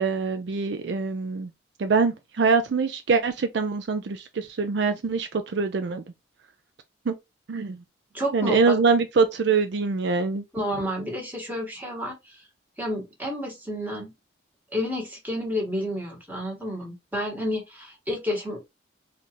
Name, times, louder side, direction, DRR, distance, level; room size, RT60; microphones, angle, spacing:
voice 1, 0.0-1.5 1.8-6.0 7.1-7.2 7.5-7.8 8.3-10.4, right 4 dB, 60° right, 0.4 m, -24 dB
voice 2, 8.1-8.7 10.5-12.4 12.8-14.1 14.7-18.6, equal, 10° right, 1.4 m, -30 dB
4.3 x 2.5 x 2.8 m
head